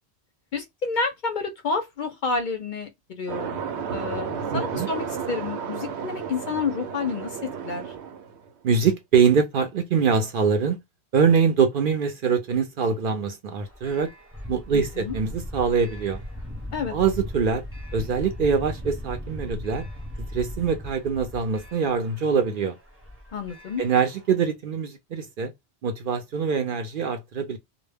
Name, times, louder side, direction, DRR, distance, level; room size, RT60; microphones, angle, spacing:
voice 1, 0.5-3.6 3.9-7.4 7.6-7.8 14.7-15.1 16.7-16.9 23.3-23.8, left 4 dB, 55° left, 0.6 m, -29 dB
sound 1, 3.3-8.5, right 7 dB, 80° right, 0.9 m, -32 dB
voice 2, 4.5-4.9 8.6-10.8 11.1-14.1 14.5-16.2 16.9-17.6 17.9-19.9 20.3-22.8 23.8-25.5 25.8-27.6, right 6 dB, 60° right, 0.6 m, -23 dB
sound 2, 13.6-24.4, left 1 dB, 15° right, 0.8 m, -38 dB
2.2 x 2.0 x 3.2 m
omnidirectional pair, 1.1 m